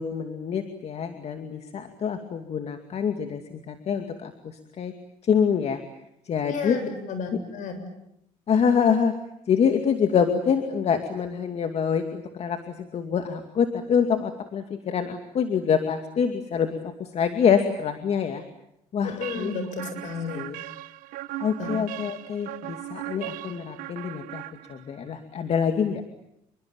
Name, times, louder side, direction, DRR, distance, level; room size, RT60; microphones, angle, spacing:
voice 1, 0.0-4.3 4.8-4.9 5.3-5.8 6.3-6.8 8.5-9.1 9.5-18.4 18.9-19.5 20.3-20.6 21.4-24.4 24.7-26.0, left 7 dB, 50° left, 7 dB, 2.4 m, -25 dB
voice 2, 6.5-7.8 19.0-20.5 21.6-21.8, left 5 dB, 65° left, 9 dB, 7.6 m, -32 dB
sound 1, 19.2-25.1, right 16 dB, 80° right, 1.1 m, -38 dB
28.0 x 23.0 x 8.9 m, 0.80 s
cardioid pair, 100°, 14 cm